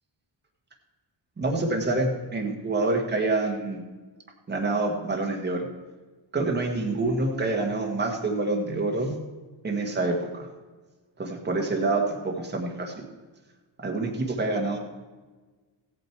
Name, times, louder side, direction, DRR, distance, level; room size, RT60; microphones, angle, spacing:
voice 1, 1.4-3.8 4.5-5.7 6.3-9.1 9.6-10.3 11.2-13.0 13.8-14.8, right 2 dB, 20° right, 1 dB, 1.4 m, -27 dB
15.5 x 8.9 x 4.6 m, 1.3 s
wide cardioid pair, 180°, 48 cm